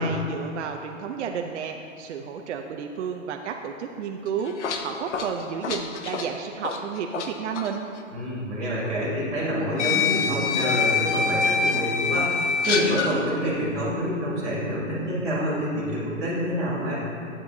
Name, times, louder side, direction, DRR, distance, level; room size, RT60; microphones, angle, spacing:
voice 1, 0.0-7.9, right 7 dB, 60° right, 3 dB, 0.7 m, -32 dB
sound 1, 4.3-7.3 7.5-7.7 8.9-9.0 9.8-13.1, left 5 dB, 65° left, 1.0 m, -25 dB
voice 2, 8.1-16.9, equal, ahead, -21 dB, 0.3 m, -27 dB
10.5 x 8.5 x 2.8 m, 2.8 s
hypercardioid pair, 150°, 39 cm